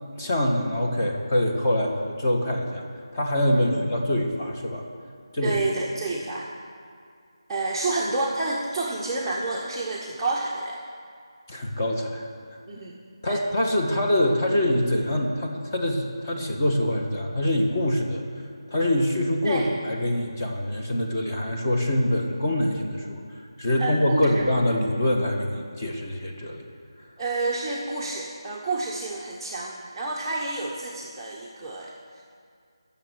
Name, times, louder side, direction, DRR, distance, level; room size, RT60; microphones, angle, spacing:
voice 1, 0.1-2.8 3.1-4.8 5.3-5.6 11.5-12.6 13.2-18.2 18.7-23.2 23.6-26.6, left 1 dB, 25° left, 0 dB, 1.6 m, -24 dB
voice 2, 5.4-6.5 7.5-10.8 12.7-13.0 13.3-13.4 19.4-19.7 23.8-24.4 27.2-32.2, right 2 dB, 5° right, -8 dB, 0.9 m, -29 dB
13.5 x 7.2 x 9.6 m, 2.2 s
figure-of-eight pair, 170°, 3 cm